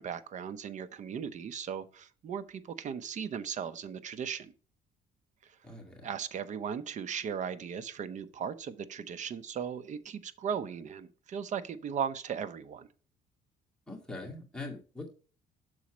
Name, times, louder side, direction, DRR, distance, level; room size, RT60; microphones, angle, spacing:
voice 1, 0.0-4.5 5.4-5.6 6.0-12.9, right 7 dB, 45° right, 13 dB, 0.7 m, -37 dB
voice 2, 5.6-6.0 13.9-15.1, left 2 dB, 5° left, -2 dB, 2.2 m, -42 dB
6.4 x 4.2 x 6.0 m, 0.38 s
cardioid pair, 110°, 17 cm